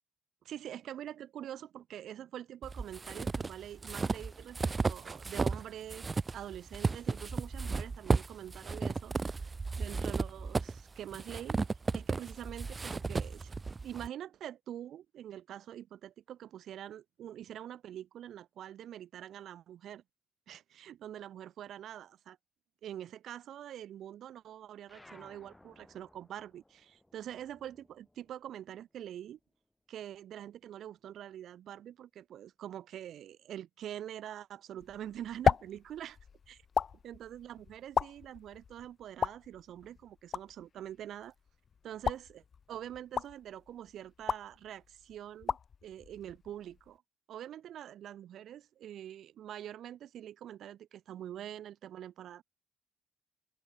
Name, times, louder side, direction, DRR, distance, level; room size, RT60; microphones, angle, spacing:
voice 1, 0.4-9.5 9.8-11.6 11.9-13.5 13.8-20.0 20.5-22.4 22.8-29.4 29.9-36.2 36.5-36.6 37.0-41.3 41.8-42.4 42.7-45.6 45.8-47.0 47.3-52.4, right 11 dB, 70° right, 1.0 m, -45 dB
sound 1, 2.6-5.6 5.9-14.1, right 4 dB, 30° right, 0.6 m, -34 dB
sound 2, 24.8-29.7 30.0-31.5, left 1 dB, 10° left, 7.3 m, -61 dB
sound 3, 34.8-47.0, left 6 dB, 45° left, 0.5 m, -37 dB
open air
cardioid pair, 90°, 0 cm